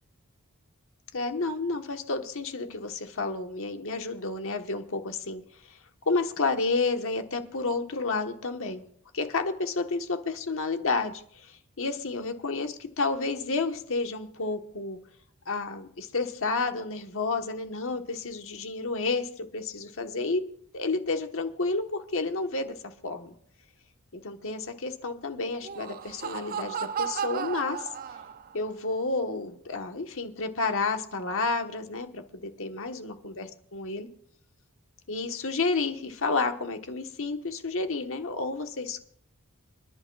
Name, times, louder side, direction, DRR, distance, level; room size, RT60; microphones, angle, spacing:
voice 1, 1.1-5.4 6.1-8.8 9.1-15.0 15.5-20.4 20.7-23.3 24.1-27.9 28.5-34.1 35.1-39.0, left 3 dB, 65° left, 5 dB, 1.3 m, -30 dB
Laughter, 25.5-28.7, right 7 dB, 40° right, 0.4 m, -34 dB
26.5 x 11.0 x 2.4 m, 0.63 s
head